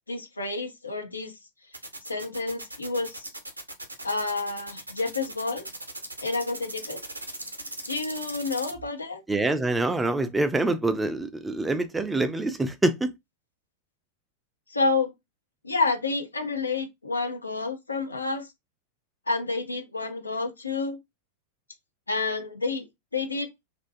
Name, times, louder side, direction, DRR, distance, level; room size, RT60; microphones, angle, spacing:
voice 1, 0.1-1.3 2.1-3.3 4.0-5.7 6.2-7.0 7.9-9.2 14.7-15.1 15.6-18.5 19.3-21.0 22.1-22.9 23.1-23.5, left 3 dB, 80° left, 0.7 m, -29 dB
sound 1, 1.7-8.7, right 2 dB, 80° right, 0.6 m, -38 dB
voice 2, 9.3-13.1, right 2 dB, 10° right, 0.4 m, -25 dB
2.4 x 2.2 x 2.6 m
figure-of-eight pair, 90°, 0 cm